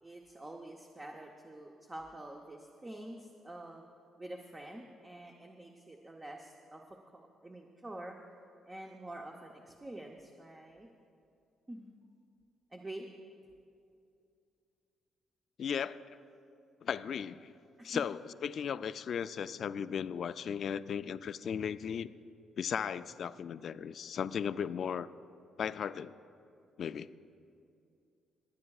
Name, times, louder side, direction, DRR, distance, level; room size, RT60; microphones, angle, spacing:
voice 1, 0.0-3.8 4.2-8.2 8.7-10.9 11.7-11.9 12.7-13.1 17.8-18.0, right 1 dB, 20° right, 1 dB, 0.7 m, -47 dB
voice 2, 15.6-16.2 16.8-17.5 17.8-22.1 22.6-25.1 25.6-26.1 26.8-27.1, left 7 dB, 60° left, 14 dB, 0.3 m, -36 dB
26.5 x 9.7 x 2.4 m, 2.5 s
cardioid pair, 90°, 0 cm